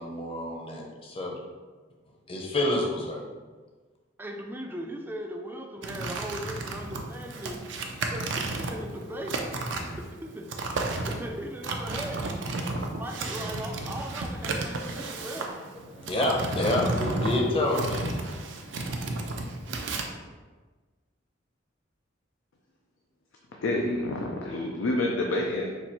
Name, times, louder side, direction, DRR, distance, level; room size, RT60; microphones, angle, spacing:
voice 1, 0.0-1.3 2.3-3.3 16.1-18.0, left 1 dB, 30° left, 0 dB, 0.6 m, -28 dB
voice 2, 4.2-7.7 8.0-9.4 9.8-12.4 12.7-15.6, right 1 dB, 10° right, 2 dB, 0.3 m, -39 dB
sound 1, 5.8-20.0, right 2 dB, 70° right, 0.5 m, -33 dB
voice 3, 23.6-25.7, left 1 dB, 85° left, -1 dB, 0.5 m, -28 dB
4.4 x 2.5 x 4.2 m, 1.3 s
head